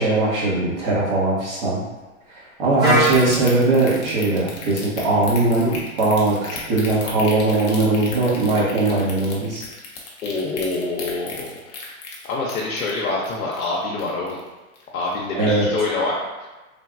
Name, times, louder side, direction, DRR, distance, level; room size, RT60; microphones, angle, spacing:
voice 1, 0.0-1.8 2.6-6.4 6.7-9.6 15.3-15.7, right 2 dB, 40° right, -6 dB, 1.1 m, -20 dB
Wind instrument woodwind instrument, 2.8-6.7, right 1 dB, 10° right, 0.6 m, -27 dB
sound 1, 2.9-14.5 14.8-15.1 15.5-15.6, left 4 dB, 30° left, 0.4 m, -35 dB
voice 2, 10.2-11.9 12.3-14.4 14.9-16.5, left 3 dB, 75° left, -4 dB, 0.7 m, -26 dB
3.2 x 2.1 x 2.4 m, 1.2 s
hypercardioid pair, 130°, 44 cm